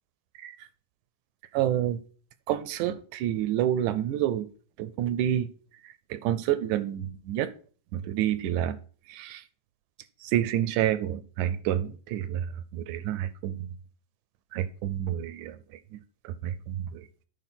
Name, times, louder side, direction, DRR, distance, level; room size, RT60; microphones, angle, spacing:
voice 1, 1.5-2.0 2.5-4.5 4.8-5.5 6.1-7.5 7.9-8.8 9.1-9.4 10.2-13.7 14.5-15.6 15.9-16.0 16.2-17.1, right 11 dB, 80° right, 1.9 m, -28 dB
9.7 x 4.8 x 5.8 m
omnidirectional pair, 3.7 m